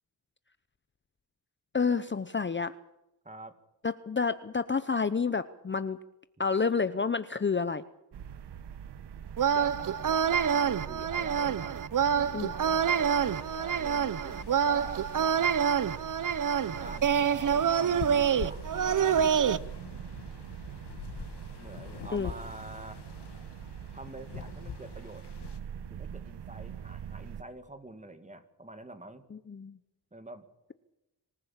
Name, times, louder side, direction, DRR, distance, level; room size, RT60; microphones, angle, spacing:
voice 1, 1.7-2.8 3.8-6.0 6.4-7.8 12.3-12.5 22.1-22.3 29.3-29.8, left 5 dB, 30° left, 13 dB, 0.8 m, -29 dB
voice 2, 3.2-3.6 9.5-11.8 12.1-15.1 16.8-19.2 21.6-23.0 23.9-25.3 25.9-29.3 30.1-30.5, right 2 dB, 20° right, 9 dB, 2.3 m, -46 dB
sound 1, 8.1-27.4, right 8 dB, 85° right, 1.2 m, -44 dB
sound 2, 9.4-19.6, right 7 dB, 50° right, 0.8 m, -27 dB
sound 3, 12.7-25.6, left 6 dB, 80° left, 2.3 m, -46 dB
26.0 x 15.0 x 7.5 m, 0.93 s
cardioid pair, 80°, 40 cm